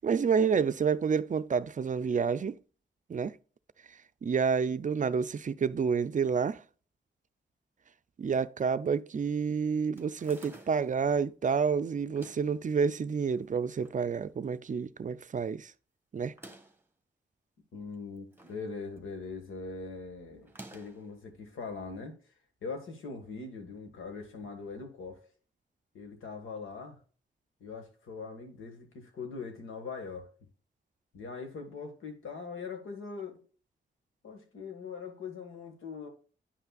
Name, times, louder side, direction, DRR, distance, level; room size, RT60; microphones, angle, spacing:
voice 1, 0.0-2.6 3.1-3.4 4.2-6.6 8.2-15.7 16.1-16.3, right 6 dB, 40° right, 0.4 m, -29 dB
sound 1, 10.0-11.0 12.0-12.6 13.4-14.0 14.4-14.5 14.7-14.8 16.2-16.9 17.9-18.7 19.0-19.3 20.4-21.1, right 1 dB, 10° right, 1.2 m, -52 dB
voice 2, 17.7-22.1 22.6-25.3 25.9-27.0 27.6-30.3 31.1-33.4 34.2-36.1, left 4 dB, 90° left, 1.6 m, -41 dB
9.7 x 5.6 x 2.3 m
cardioid pair, 55°, 20 cm